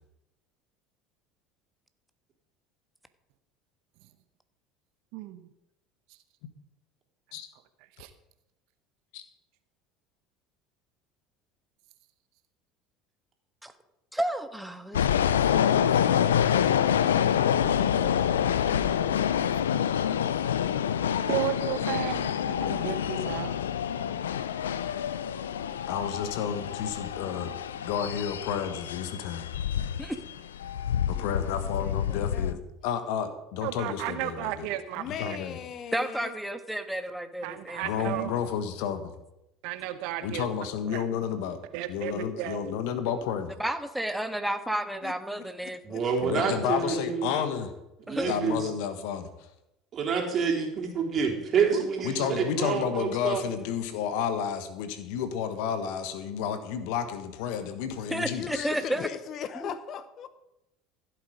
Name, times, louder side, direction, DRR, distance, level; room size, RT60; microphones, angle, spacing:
voice 1, 14.1-15.3 17.7-18.1 30.0-30.2 35.9-38.2 43.6-45.8 48.1-48.3 58.1-59.1 59.6-59.7, right 1 dB, 5° right, 8 dB, 1.5 m, -32 dB
sound 1, 14.9-32.5, left 9 dB, 85° left, 0.5 m, -27 dB
voice 2, 15.7-16.2 18.9-19.5 21.3-23.5 33.6-35.0 37.4-38.3 39.6-40.5 40.9-41.0 41.7-42.8 51.7-51.8 52.2-52.3, right 13 dB, 65° right, 12 dB, 0.9 m, -34 dB
voice 3, 25.9-27.5 27.8-29.5 31.1-34.7 35.0-35.6 37.8-39.1 40.2-41.6 41.9-43.5 46.2-47.7 48.2-49.3 52.0-58.6, left 8 dB, 70° left, 10 dB, 1.4 m, -31 dB
voice 4, 31.1-32.6 35.0-36.3 45.0-45.1 45.9-46.3 58.3-60.3, left 8 dB, 50° left, 13 dB, 1.0 m, -39 dB
voice 5, 45.8-47.3 48.1-48.7 49.9-53.4, right 6 dB, 40° right, 0 dB, 3.6 m, -28 dB
15.0 x 8.3 x 5.1 m, 0.88 s
hypercardioid pair, 70°, 0 cm